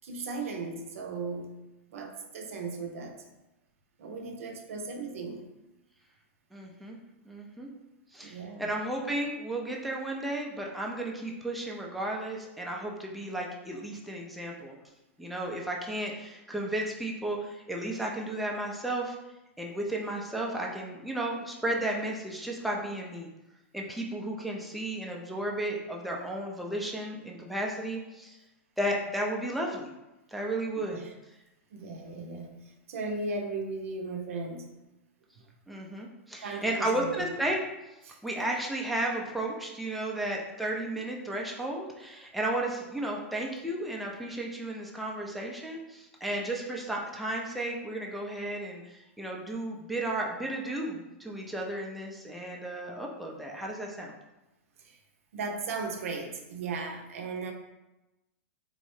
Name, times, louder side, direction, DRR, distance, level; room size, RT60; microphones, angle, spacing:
voice 1, 0.0-1.5 1.9-3.2 4.0-5.5 8.2-8.7 30.9-31.1 31.7-34.7 36.4-37.3 38.1-38.5 54.8-55.0 55.3-57.5, right 3 dB, 75° right, 3 dB, 0.5 m, -37 dB
voice 2, 6.5-7.0 7.3-7.7 8.1-14.8 15.2-19.2 19.6-23.3 23.7-28.4 28.8-29.9 30.3-31.0 35.7-37.6 38.2-54.1, right 1 dB, ahead, -2 dB, 0.4 m, -33 dB
3.6 x 2.0 x 3.1 m, 1.0 s
hypercardioid pair, 125°, 7 cm